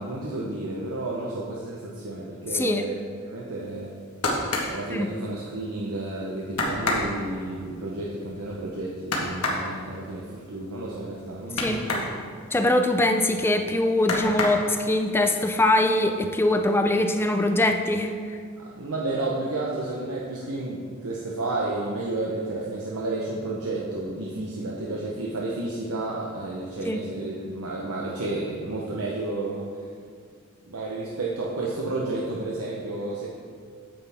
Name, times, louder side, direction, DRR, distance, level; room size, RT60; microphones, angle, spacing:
voice 1, 0.0-3.9 4.7-12.1 18.6-29.7 30.7-33.3, right 2 dB, 80° right, -4 dB, 1.0 m, -31 dB
sound 1, 3.8-5.8 6.1-6.2 6.5-12.1 12.5-13.6 14.0-15.1 15.5-16.1 16.4-17.1 17.4-17.5, left 2 dB, 80° left, 1.5 m, -29 dB
voice 2, 12.5-18.1 26.9-27.0, left 1 dB, 10° left, 6 dB, 0.4 m, -22 dB
8.9 x 7.9 x 3.5 m, 2.1 s
head